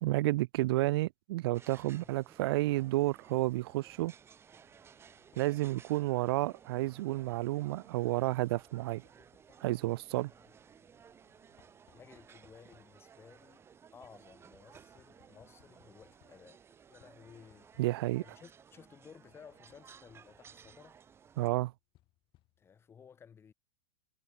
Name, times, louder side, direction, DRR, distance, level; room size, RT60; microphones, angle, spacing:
voice 1, 0.0-4.1 5.4-9.0 9.6-10.3 17.8-18.2 21.4-21.7, right 18 dB, 55° right, 0.5 m, -31 dB
sound 1, 1.5-21.5, right 7 dB, 15° right, 1.7 m, -58 dB
Knock, 4.5-22.9, left 17 dB, 35° left, 6.5 m, -71 dB
voice 2, 11.9-13.7 13.9-16.6 16.9-17.8 18.2-21.0 22.6-23.5, left 7 dB, 15° left, 2.2 m, -57 dB
supercardioid pair, 145°, 15 cm